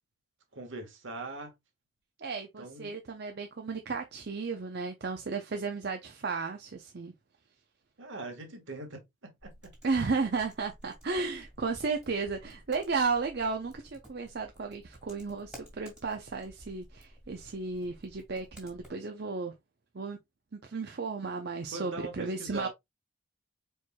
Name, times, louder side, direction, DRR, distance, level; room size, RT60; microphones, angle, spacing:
voice 1, 0.5-1.5 2.6-3.0 8.0-9.7 21.7-22.7, right 2 dB, 65° right, 1.4 m, -41 dB
voice 2, 2.2-7.1 9.8-19.5 19.9-20.2 20.5-22.7, right 4 dB, 50° right, 0.6 m, -34 dB
sound 1, 9.4-18.9, equal, 5° right, 2.0 m, -54 dB
4.5 x 4.5 x 2.2 m
head